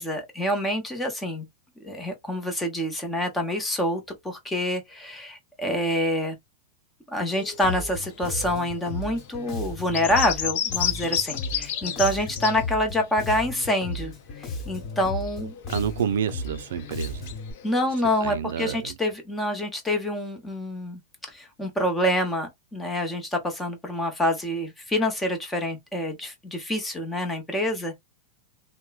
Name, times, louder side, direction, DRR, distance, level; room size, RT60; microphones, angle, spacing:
voice 1, 0.0-1.4 1.8-6.4 7.1-15.5 17.6-21.0 21.3-28.0, left 1 dB, 10° left, 0.9 m, -27 dB
sound 1, 7.3-12.8 13.0-18.3, left 9 dB, 65° left, 0.6 m, -34 dB
Bass guitar, 7.6-17.5, left 2 dB, 30° left, 1.2 m, -35 dB
voice 2, 15.7-17.3 18.2-19.0, right 8 dB, 85° right, 0.3 m, -29 dB
2.9 x 2.1 x 2.3 m
supercardioid pair, 135°, 0 cm